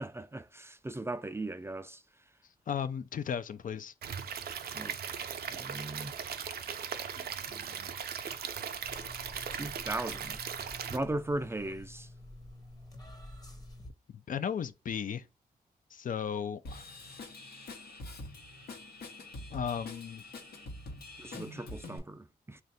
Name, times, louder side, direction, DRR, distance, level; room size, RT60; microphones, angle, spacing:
voice 1, 0.0-2.0 4.7-6.1 7.5-7.9 9.5-10.4 10.9-12.1 21.2-22.6, right 2 dB, 15° right, 0.3 m, -38 dB
voice 2, 2.7-3.9 14.1-15.3 15.9-16.9 19.5-20.2, left 7 dB, 55° left, 0.4 m, -35 dB
Stream / Liquid, 4.0-11.0, right 7 dB, 75° right, 0.5 m, -38 dB
sound 1, 8.8-13.9, left 1 dB, 25° left, 0.9 m, -49 dB
Drum kit / Drum, 16.6-22.0, left 2 dB, 80° left, 1.0 m, -45 dB
3.3 x 2.4 x 4.0 m
cardioid pair, 65°, 16 cm